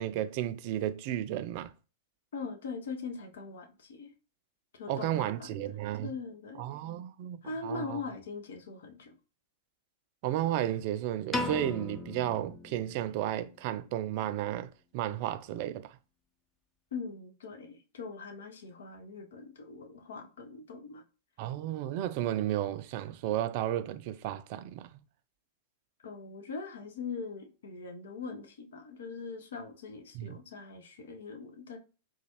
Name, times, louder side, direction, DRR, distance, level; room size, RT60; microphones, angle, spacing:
voice 1, 0.0-1.7 4.9-6.1 6.6-8.0 10.2-15.9 21.4-24.9 30.1-30.4, right 12 dB, 45° right, 0.4 m, -33 dB
voice 2, 2.3-4.1 4.8-5.5 6.0-6.6 7.4-9.1 16.9-21.0 26.0-31.8, left 4 dB, 65° left, 0.6 m, -41 dB
Piano, 11.3-13.6, left 2 dB, 10° left, 0.5 m, -37 dB
3.9 x 2.3 x 2.8 m
figure-of-eight pair, 95°, 0 cm